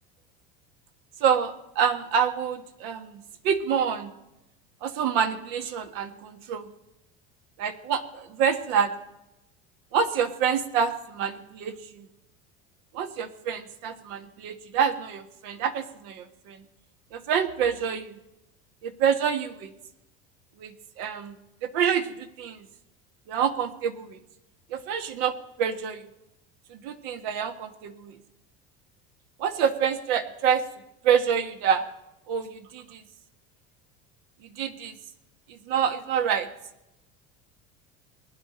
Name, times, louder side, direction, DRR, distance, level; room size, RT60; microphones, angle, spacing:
voice 1, 1.2-4.1 4.8-6.7 7.6-8.9 9.9-12.1 12.9-16.6 17.1-18.2 18.8-19.7 20.6-21.4 21.6-22.6 23.3-24.2 24.7-26.0 26.7-28.2 29.4-30.6 31.0-31.8 32.3-33.0 34.5-34.9 35.5-36.5, right 7 dB, 75° right, 7 dB, 1.5 m, -27 dB
20.5 x 10.0 x 4.3 m, 0.89 s
supercardioid pair, 115°, 29 cm